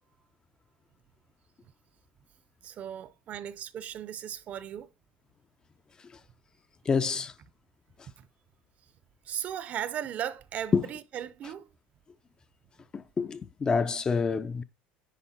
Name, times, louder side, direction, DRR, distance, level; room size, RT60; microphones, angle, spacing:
voice 1, 2.6-4.9 8.2-8.3 9.3-11.7, right 10 dB, 40° right, 0.6 m, -37 dB
voice 2, 6.9-7.3 10.7-10.9 12.9-14.6, left 5 dB, 20° left, 0.4 m, -27 dB
9.9 x 4.5 x 4.2 m
cardioid pair, 150°, 4 cm